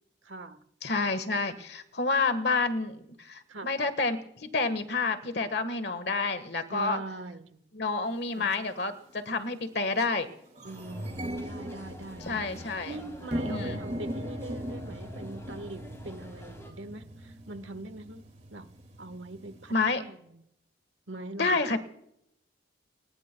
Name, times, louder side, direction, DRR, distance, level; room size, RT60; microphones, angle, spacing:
voice 1, 0.2-0.6 3.5-3.7 6.7-7.7 8.4-8.5 10.6-18.2 18.5-18.7 19.0-20.4 21.1-21.6, right 2 dB, 80° right, 10 dB, 1.3 m, -42 dB
voice 2, 0.8-7.0 7.7-10.3 12.2-13.0 13.4-13.8 19.7-20.0 21.4-21.8, left 3 dB, 60° left, 10 dB, 1.5 m, -29 dB
sound 1, 8.2-8.3 9.1-9.3 9.7-9.8 10.1-19.8, equal, 35° right, 2.2 m, -39 dB
sound 2, 10.6-16.7, equal, 15° left, 3.4 m, -50 dB
29.0 x 20.0 x 2.3 m, 0.76 s
head